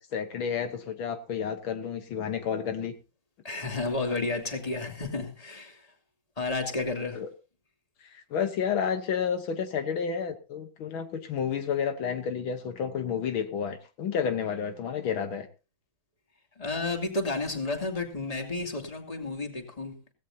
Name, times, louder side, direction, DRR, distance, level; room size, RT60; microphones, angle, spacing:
voice 1, 0.0-2.9 7.2-7.3 8.0-15.5, left 7 dB, 70° left, 1.9 m, -31 dB
voice 2, 3.4-5.9 6.4-7.2 16.6-20.1, left 3 dB, 15° left, 2.6 m, -32 dB
17.0 x 16.5 x 2.8 m
omnidirectional pair, 2.3 m